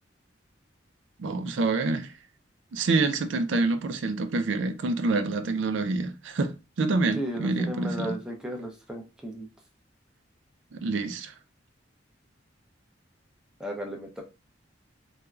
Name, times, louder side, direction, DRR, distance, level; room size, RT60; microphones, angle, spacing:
voice 1, 1.2-2.1 2.7-8.2 10.7-11.3, right 3 dB, 85° right, 0.4 m, -27 dB
voice 2, 7.2-9.5 13.6-14.2, equal, 5° right, 0.6 m, -35 dB
4.2 x 2.2 x 2.4 m
head